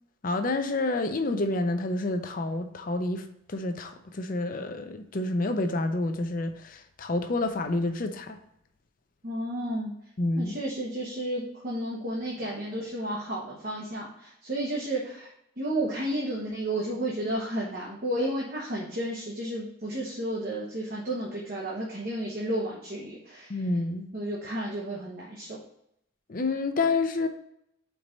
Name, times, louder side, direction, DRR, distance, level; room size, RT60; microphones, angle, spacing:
voice 1, 0.2-8.4 10.2-10.5 23.5-24.1 26.3-27.3, left 2 dB, 45° left, 0.5 m, -29 dB
voice 2, 9.2-9.9 10.4-15.3 15.6-23.6 24.1-25.6, right 1 dB, 45° right, 1.1 m, -32 dB
4.6 x 4.2 x 5.1 m
head